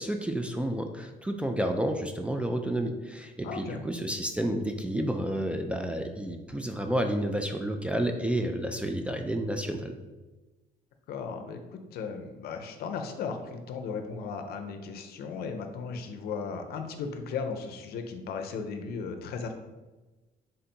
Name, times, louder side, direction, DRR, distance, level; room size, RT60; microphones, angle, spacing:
voice 1, 0.0-9.9, right 1 dB, 5° right, 4 dB, 0.3 m, -30 dB
voice 2, 3.4-3.8 11.1-11.6 11.9-19.5, left 5 dB, 65° left, 6 dB, 0.6 m, -36 dB
3.8 x 2.6 x 4.3 m, 1.2 s
cardioid pair, 110°, 17 cm